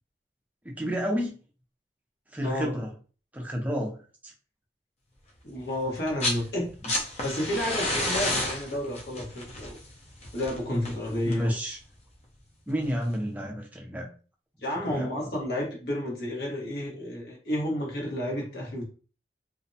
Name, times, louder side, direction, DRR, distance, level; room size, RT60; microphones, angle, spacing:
voice 1, 0.6-1.3 2.3-2.9 3.3-4.0 4.2-4.3 11.3-11.8 12.7-14.1 14.9-15.1, equal, 10° right, 1 dB, 0.4 m, -30 dB
voice 2, 2.4-2.8 5.4-6.7 7.2-9.8 10.3-11.5 14.6-18.8, left 1 dB, 70° left, -2 dB, 1.1 m, -31 dB
sound 1, 5.9-6.4 6.7-11.6 12.8-12.9, left 1 dB, 35° left, 0.6 m, -31 dB
2.5 x 2.1 x 2.6 m, 0.38 s
head